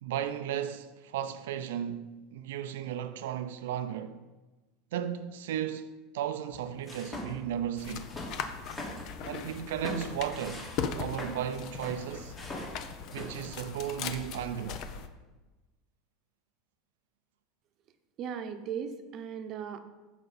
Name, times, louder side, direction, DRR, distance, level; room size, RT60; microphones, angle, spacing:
voice 1, 0.0-4.3 4.9-8.1 9.2-12.4 13.1-14.8, right 10 dB, 90° right, 0.5 m, -35 dB
sound 1, 6.5-7.5 7.9-9.1 9.5-11.4 11.8-13.5, left 1 dB, 25° left, 2.2 m, -42 dB
sound 2, 7.8-15.1, left 6 dB, 50° left, 0.7 m, -39 dB
voice 2, 18.2-19.8, right 7 dB, 45° right, 0.8 m, -37 dB
14.5 x 5.1 x 4.2 m
supercardioid pair, 135°, 0 cm